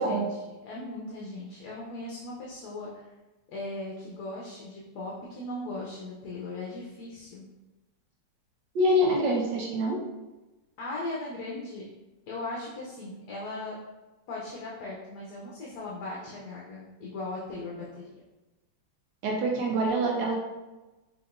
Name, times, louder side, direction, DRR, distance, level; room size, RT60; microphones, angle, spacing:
voice 1, 0.0-3.0 3.5-7.4 10.8-11.8 12.3-13.8 14.3-18.1, left 2 dB, 65° left, -5 dB, 1.2 m, -38 dB
voice 2, 8.7-10.0 19.2-20.4, equal, 70° right, -1 dB, 1.2 m, -25 dB
4.9 x 3.4 x 2.5 m, 1.1 s
omnidirectional pair, 2.1 m